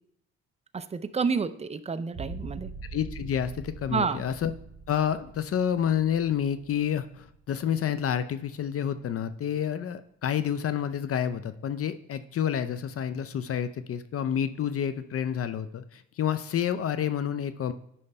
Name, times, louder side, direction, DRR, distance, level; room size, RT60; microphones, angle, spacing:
voice 1, 0.7-2.7 3.9-4.2, right 5 dB, 20° right, 13 dB, 0.4 m, -29 dB
sound 1, 2.1-7.6 8.0-8.7, right 4 dB, 40° right, 2.0 m, -44 dB
voice 2, 2.9-4.5 4.9-17.7, left 9 dB, 50° left, 11 dB, 0.5 m, -29 dB
9.7 x 3.3 x 5.4 m, 0.73 s
cardioid pair, 90°, 30 cm